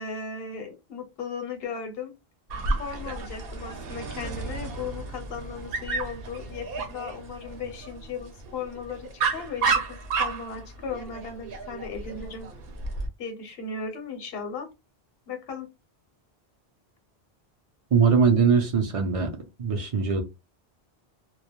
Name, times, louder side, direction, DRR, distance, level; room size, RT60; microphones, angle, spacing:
voice 1, 0.0-2.1 2.8-12.5 13.2-14.7 15.3-15.7, left 5 dB, 70° left, 0.9 m, -36 dB
Dog, 2.5-13.1, right 4 dB, 65° right, 0.8 m, -32 dB
voice 2, 17.9-20.2, right 6 dB, 45° right, 0.4 m, -22 dB
2.2 x 2.0 x 2.8 m
omnidirectional pair, 1.1 m